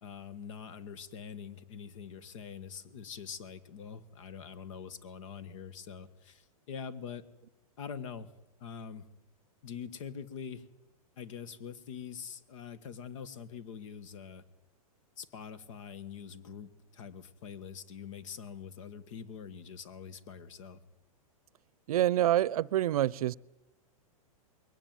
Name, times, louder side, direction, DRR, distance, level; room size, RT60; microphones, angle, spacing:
voice 1, 0.0-7.3 7.8-8.3 8.6-9.1 9.6-10.6 11.2-14.4 15.2-20.8, left 7 dB, 55° left, 1.7 m, -44 dB
voice 2, 21.9-23.3, right 13 dB, 75° right, 0.7 m, -26 dB
22.0 x 17.5 x 9.2 m
supercardioid pair, 160°, 19 cm